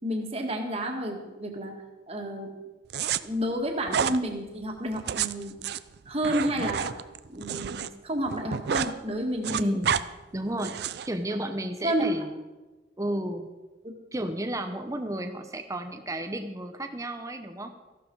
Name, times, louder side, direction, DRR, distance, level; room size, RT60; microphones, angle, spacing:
voice 1, 0.0-1.7 2.1-2.5 3.2-5.5 6.1-6.9 7.3-9.8 11.8-12.1, right 1 dB, 35° right, 2 dB, 1.9 m, -30 dB
sound 1, 2.9-3.2 3.9-4.2 4.9-7.9 8.2-8.9 9.2-10.0 10.6-11.1, right 8 dB, 60° right, 0.4 m, -29 dB
voice 2, 9.5-10.0 10.3-10.7 11.0-12.3 13.0-13.5 14.1-17.7, right 1 dB, 15° right, 7 dB, 0.8 m, -32 dB
14.5 x 11.5 x 4.7 m, 1.2 s
head